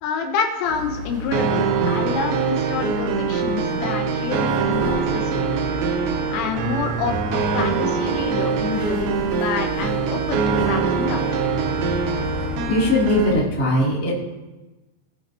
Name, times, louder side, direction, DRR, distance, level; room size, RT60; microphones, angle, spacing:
voice 1, 0.0-5.5 6.3-11.3, left 5 dB, 80° left, 4 dB, 3.3 m, -28 dB
sound 1, 0.6-13.3, left 2 dB, 50° right, 4.6 m, -33 dB
sound 2, 1.3-13.3, right 5 dB, 75° right, 2.8 m, -23 dB
voice 2, 12.7-14.1, left 1 dB, 5° left, -8 dB, 1.5 m, -20 dB
19.0 x 6.3 x 3.0 m, 1.1 s
omnidirectional pair, 5.9 m